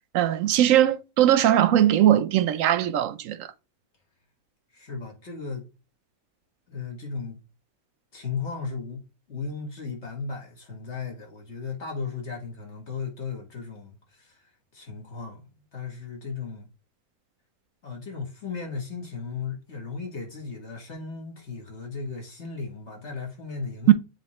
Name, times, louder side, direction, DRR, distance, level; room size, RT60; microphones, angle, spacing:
voice 1, 0.1-3.5 23.9-24.0, right 11 dB, 70° right, 0.9 m, -20 dB
voice 2, 4.7-5.7 6.7-7.4 8.1-14.4 14.7-16.7 17.8-23.9, left 5 dB, 50° left, 2.1 m, -36 dB
7.6 x 3.3 x 4.2 m
omnidirectional pair, 1.6 m